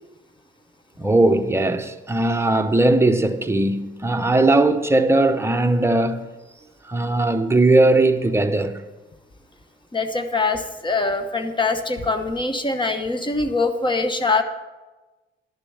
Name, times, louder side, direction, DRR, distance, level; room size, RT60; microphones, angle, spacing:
voice 1, 1.0-6.3 6.9-8.8, right 2 dB, 15° right, 0.9 m, -19 dB
voice 2, 9.9-14.4, left 3 dB, 25° left, 0.9 m, -23 dB
11.5 x 6.9 x 7.0 m
cardioid pair, 90°, 20 cm